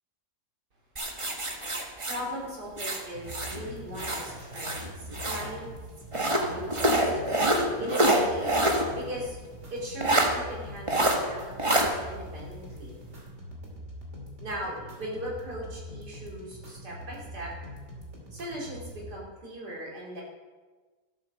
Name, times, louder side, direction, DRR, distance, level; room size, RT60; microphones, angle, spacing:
sound 1, 1.0-3.6 3.9-5.5 6.1-8.9 9.2-9.3 10.0-10.3 10.9-11.2 11.6-11.9, right 1 dB, 20° right, 1.2 m, -26 dB
voice 1, 1.5-5.9 6.1-9.4 9.7-13.0 14.4-17.5 18.3-20.2, equal, 70° right, -4 dB, 3.8 m, -39 dB
sound 2, 3.1-19.1, equal, 45° right, 2.8 m, -44 dB
13.5 x 8.3 x 6.4 m, 1.3 s
omnidirectional pair, 1.8 m